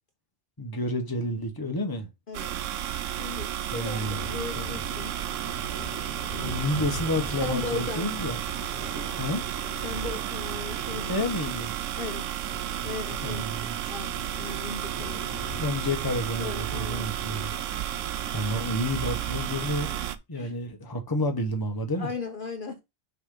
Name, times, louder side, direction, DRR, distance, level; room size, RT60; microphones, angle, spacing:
voice 1, 0.6-2.1 3.7-4.3 6.4-8.4 9.2-9.4 11.1-11.7 13.2-13.8 15.6-17.5 18.3-22.1, left 1 dB, 20° left, 1.1 m, -30 dB
sound 1, 2.3-20.2, right 11 dB, 90° right, 1.0 m, -32 dB
voice 2, 3.0-5.1 6.3-6.7 7.4-8.1 9.8-11.2 12.0-12.3 12.8-15.4 16.4-17.1 20.3-20.5 22.0-22.8, left 4 dB, 50° left, 1.1 m, -37 dB
Thunder, 3.9-20.1, left 1 dB, 15° right, 2.5 m, -43 dB
6.5 x 5.1 x 3.8 m
omnidirectional pair, 1.3 m